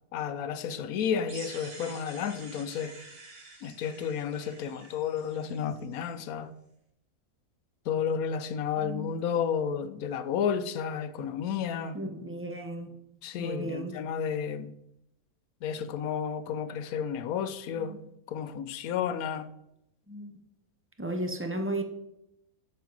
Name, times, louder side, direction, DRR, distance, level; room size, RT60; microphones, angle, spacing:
voice 1, 0.1-2.9 3.6-6.5 7.9-12.0 13.2-14.7 15.6-18.0 18.3-19.5, left 7 dB, 75° left, 1.0 m, -32 dB
sound 1, 1.3-6.1, right 3 dB, 80° right, 1.9 m, -49 dB
voice 2, 8.8-9.2 11.9-12.9 13.4-13.9 17.8-18.0 20.1-20.3 21.0-21.8, right 1 dB, 15° right, 0.4 m, -34 dB
7.3 x 7.0 x 3.9 m
omnidirectional pair, 1.6 m